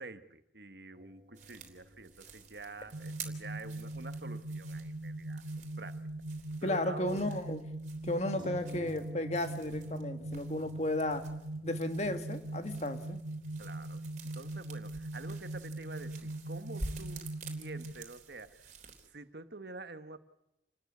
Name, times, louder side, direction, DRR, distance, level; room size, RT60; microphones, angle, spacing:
voice 1, 0.0-5.4 5.8-6.0 6.6-7.4 13.6-14.0 14.3-18.7 19.1-20.2, right 3 dB, 60° right, 10 dB, 1.4 m, -47 dB
sound 1, 0.9-4.8 5.1-5.2 8.4-13.6, left 1 dB, 25° right, 5.3 m, -56 dB
sound 2, 1.3-19.1, right 3 dB, 40° right, 3.6 m, -50 dB
sound 3, 2.9-17.9, right 2 dB, 80° right, 1.1 m, -41 dB
voice 2, 6.6-7.6 8.0-11.2 11.6-13.2, left 1 dB, 35° left, 8 dB, 1.9 m, -34 dB
29.0 x 13.5 x 9.5 m, 0.88 s
head